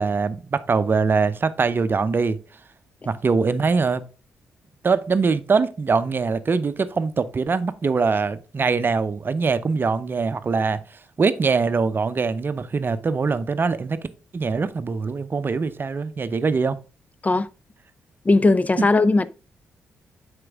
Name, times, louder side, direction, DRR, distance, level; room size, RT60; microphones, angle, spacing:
voice 1, 0.0-2.4 3.1-4.0 4.8-14.0 14.3-16.8 18.8-18.9, right 4 dB, 40° right, 0.7 m, -23 dB
voice 2, 18.3-19.3, left 3 dB, 30° left, 0.6 m, -18 dB
7.7 x 5.2 x 3.5 m
hypercardioid pair, 45°, 5 cm